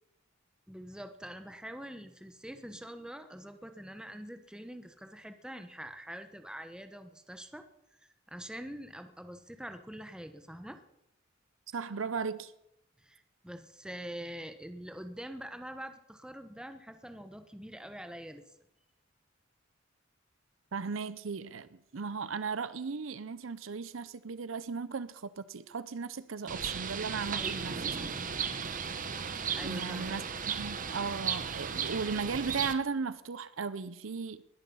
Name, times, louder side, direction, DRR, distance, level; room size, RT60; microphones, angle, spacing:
voice 1, 0.7-7.6 8.3-10.8 13.0-18.4 27.3-27.7 29.6-30.2, equal, 5° right, 1.0 m, -44 dB
voice 2, 11.7-12.5 20.7-28.0 29.6-34.4, right 5 dB, 70° right, 0.6 m, -36 dB
Bird, 26.5-32.7, right 6 dB, 40° right, 1.0 m, -35 dB
20.5 x 10.5 x 5.5 m
head